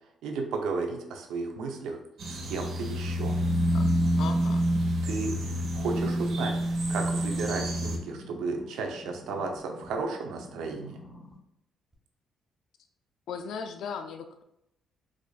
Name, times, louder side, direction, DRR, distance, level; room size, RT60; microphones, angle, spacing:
voice 1, 0.2-2.0 2.3-3.4 5.0-11.0, right 4 dB, 85° right, 3 dB, 0.6 m, -34 dB
sound 1, 2.2-8.0, equal, 65° right, 0.8 m, -27 dB
voice 2, 4.2-4.6 13.3-14.4, left 6 dB, 75° left, 6 dB, 0.4 m, -37 dB
sound 2, 6.9-10.0 10.4-11.4 11.9-12.0, left 1 dB, 15° right, 1.2 m, -48 dB
4.8 x 2.5 x 2.3 m, 0.81 s
cardioid pair, 90°, 0 cm